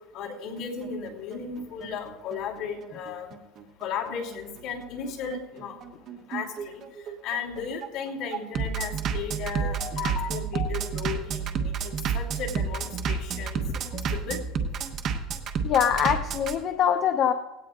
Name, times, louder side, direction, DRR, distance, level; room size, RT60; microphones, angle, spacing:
voice 1, 0.1-3.3 3.8-5.7 6.1-6.8 7.2-13.6 13.9-14.4, left 6 dB, 55° left, -1 dB, 2.9 m, -35 dB
Bass drum, 0.6-16.5, right 6 dB, 40° right, 1.0 m, -30 dB
voice 2, 9.6-10.7 13.7-13.8 15.6-17.3, left 9 dB, 40° left, 7 dB, 0.6 m, -25 dB
18.0 x 17.0 x 2.5 m, 1.1 s
cardioid pair, 165°, 0 cm